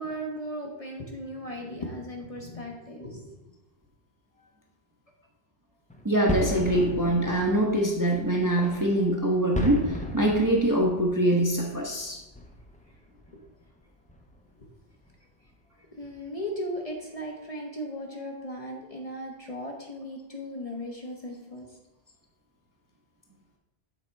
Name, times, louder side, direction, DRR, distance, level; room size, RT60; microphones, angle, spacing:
voice 1, 0.0-3.5 15.8-21.8, equal, 35° left, 0 dB, 0.8 m, -37 dB
sound 1, 5.9-13.8 14.1-14.6 15.0-15.1 15.4-15.5 16.0-16.4, equal, 10° left, 0.3 m, -37 dB
voice 2, 6.0-12.2, right 1 dB, 20° right, -1 dB, 0.7 m, -24 dB
7.1 x 4.2 x 4.4 m, 0.96 s
omnidirectional pair, 1.2 m